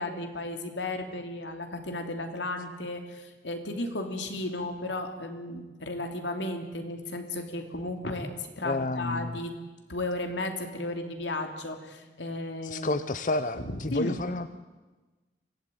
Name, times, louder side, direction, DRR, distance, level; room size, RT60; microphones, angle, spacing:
voice 1, 0.0-9.6 9.9-13.0 13.6-14.2, left 2 dB, 80° left, 5 dB, 2.9 m, -34 dB
voice 2, 8.6-9.4 12.6-14.5, left 2 dB, 45° left, 12 dB, 0.6 m, -30 dB
24.5 x 16.5 x 9.2 m, 1.2 s
head